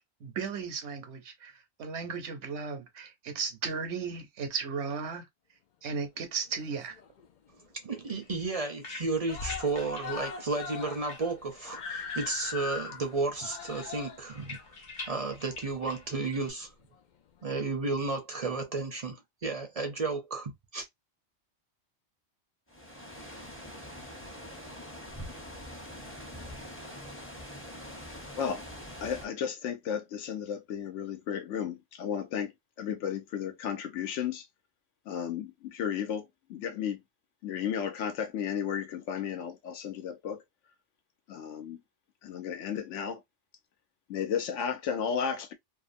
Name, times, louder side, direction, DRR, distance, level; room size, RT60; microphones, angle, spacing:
voice 1, 0.2-1.5 1.8-5.3 5.8-7.0, right 5 dB, 75° right, 1.0 m, -35 dB
Screaming, 6.4-7.3 7.6-7.7 8.1-8.2 8.5-8.9 9.3-16.1 16.9-17.0, left 5 dB, 60° left, 0.5 m, -41 dB
voice 2, 7.8-14.6 15.1-16.7 17.4-20.9, right 3 dB, 40° right, 0.6 m, -33 dB
sound 1, 8.1-11.8 12.1-13.0 13.3-16.5, left 3 dB, 45° left, 1.0 m, -47 dB
sound 2, 22.7-29.3, equal, 15° left, 0.6 m, -44 dB
voice 3, 29.0-32.5 32.8-34.4 35.1-37.0 37.4-40.4 41.3-41.8 42.2-43.2 44.1-45.5, left 8 dB, 85° left, 1.0 m, -33 dB
2.5 x 2.4 x 2.5 m
omnidirectional pair, 1.2 m